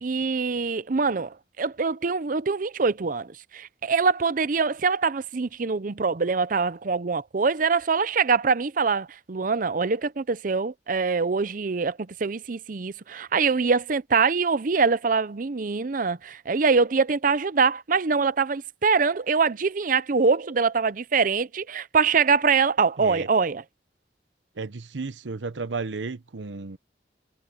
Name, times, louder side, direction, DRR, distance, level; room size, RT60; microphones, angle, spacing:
voice 1, 0.0-23.6, right 5 dB, 50° right, 0.6 m, -24 dB
voice 2, 23.0-23.3 24.6-26.8, right 4 dB, 90° right, 0.8 m, -33 dB
head